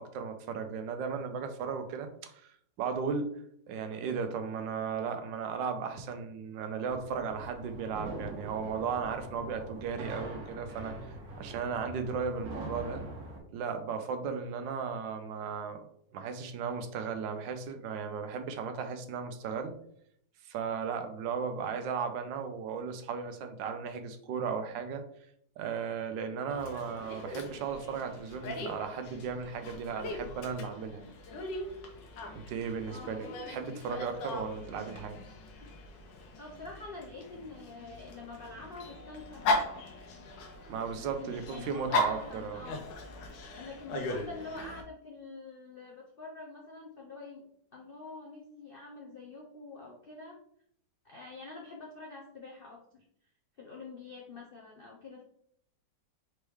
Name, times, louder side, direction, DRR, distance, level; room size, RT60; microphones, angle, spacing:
voice 1, 0.0-3.4 3.7-11.0 11.4-13.0 13.5-15.9 16.1-19.8 20.4-25.0 25.6-31.1 32.3-35.2 40.7-42.6, right 6 dB, 90° right, 7 dB, 1.3 m, -36 dB
sound 1, 6.9-13.4, right 1 dB, 60° right, 1.4 m, -43 dB
Dog, 26.5-44.8, left 2 dB, 90° left, 1.5 m, -38 dB
voice 2, 32.9-33.3 36.4-39.8 40.9-42.8 43.5-47.4 47.7-50.4 51.0-53.0 53.6-55.2, left 3 dB, 70° left, -2 dB, 0.5 m, -46 dB
4.4 x 3.1 x 3.4 m, 0.68 s
omnidirectional pair, 1.9 m